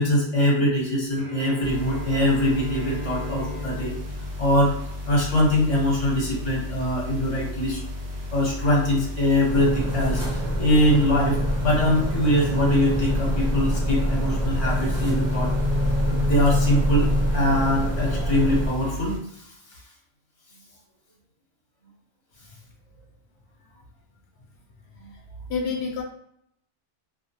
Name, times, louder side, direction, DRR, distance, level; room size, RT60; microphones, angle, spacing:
voice 1, 0.0-3.9 4.4-4.8 5.1-7.8 8.3-15.5 16.1-19.2, left 1 dB, 35° left, -4 dB, 0.8 m, -23 dB
Bowed string instrument, 1.1-5.2, left 1 dB, 45° right, 0.4 m, -38 dB
sound 1, 1.6-19.2, left 1 dB, 70° right, 0.9 m, -34 dB
sound 2, 9.5-18.7, equal, 30° right, 0.8 m, -25 dB
voice 2, 25.5-26.0, left 5 dB, 75° left, 0 dB, 0.9 m, -28 dB
2.5 x 2.0 x 2.7 m, 0.73 s
omnidirectional pair, 1.2 m